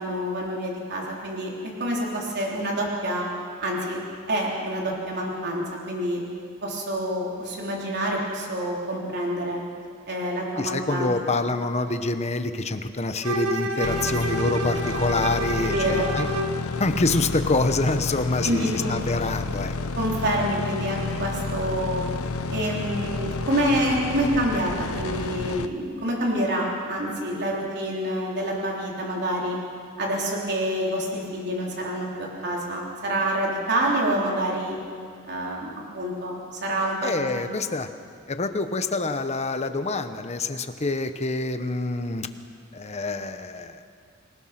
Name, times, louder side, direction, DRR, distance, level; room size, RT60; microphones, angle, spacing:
voice 1, 0.0-1.5 1.8-3.3 3.6-4.0 4.3-6.2 6.6-9.6 10.1-11.3 13.8-13.9 15.7-16.1 18.4-18.9 20.0-22.1 22.5-29.6 30.0-34.8 35.2-37.1, right 1 dB, 50° right, -2 dB, 3.8 m, -27 dB
voice 2, 10.6-16.3 16.8-19.8 37.0-37.9 38.3-42.3 42.7-43.8, left 2 dB, 30° left, 9 dB, 1.0 m, -26 dB
Bowed string instrument, 13.2-16.6, right 1 dB, 85° right, 1.6 m, -29 dB
sound 1, 13.8-25.7, left 3 dB, 75° left, 0.9 m, -30 dB
26.5 x 19.0 x 6.0 m, 2.2 s
head